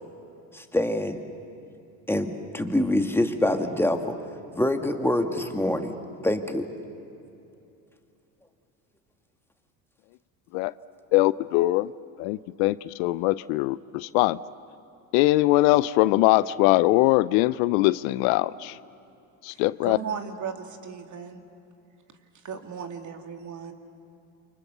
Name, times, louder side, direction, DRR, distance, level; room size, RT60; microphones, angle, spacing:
voice 1, 0.5-1.2 2.1-4.2 4.5-5.9 6.2-6.7, left 1 dB, 5° left, 5 dB, 2.0 m, -25 dB
voice 2, 11.1-11.9 12.2-14.4 15.1-18.8 19.4-20.0, left 18 dB, 75° left, 18 dB, 0.6 m, -22 dB
voice 3, 19.5-21.4 22.4-23.7, right 6 dB, 40° right, 5 dB, 2.6 m, -36 dB
28.5 x 25.0 x 6.9 m, 2.7 s
supercardioid pair, 80°, 44 cm